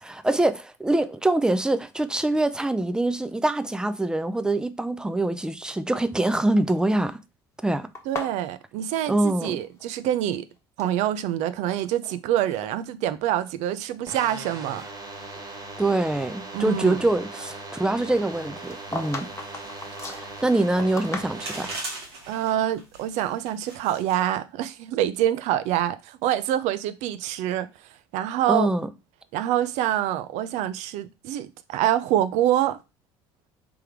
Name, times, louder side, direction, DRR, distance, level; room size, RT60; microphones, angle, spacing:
voice 1, 0.0-7.2 7.6-7.9 9.1-9.6 15.8-19.3 20.1-21.7 28.5-28.9, right 2 dB, 5° right, 0.5 m, -24 dB
sound 1, 7.9-9.9 10.2-11.0 11.6-12.2 12.5-12.7 13.4-13.5 14.0-15.5 15.9-16.0 18.3-21.7, left 3 dB, 20° left, 1.3 m, -38 dB
voice 2, 8.1-10.5 10.8-14.8 16.5-17.0 22.3-27.7 28.1-28.7 29.3-32.8, right 12 dB, 65° right, 0.5 m, -26 dB
sound 2, 14.1-21.7, right 2 dB, 30° right, 1.5 m, -39 dB
sound 3, 18.6-24.4, right 2 dB, 90° right, 1.5 m, -41 dB
3.4 x 3.4 x 4.5 m
hypercardioid pair, 70°, 13 cm